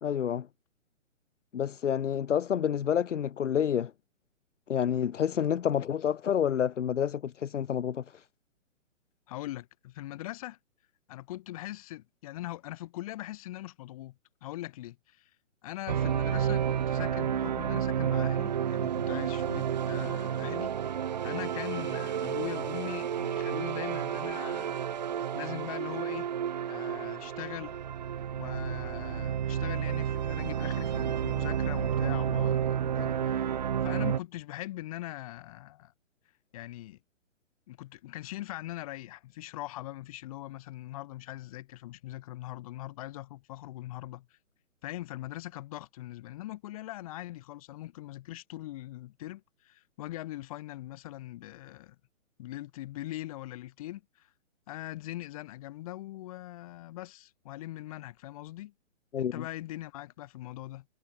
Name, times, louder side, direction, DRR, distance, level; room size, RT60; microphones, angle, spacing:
voice 1, 0.0-0.5 1.5-3.9 4.7-8.2 59.1-59.5, left 9 dB, 65° left, 1.1 m, -29 dB
voice 2, 9.3-10.6 11.1-15.3 15.6-24.8 25.3-26.3 26.7-27.8 28.4-33.5 33.8-35.9 36.5-37.0 37.7-44.4 44.8-52.0 52.4-54.3 54.7-58.7 59.2-60.9, left 16 dB, 25° left, 3.8 m, -41 dB
sound 1, 15.9-34.2, right 9 dB, 35° right, 0.8 m, -31 dB
hypercardioid pair, 170°, 39 cm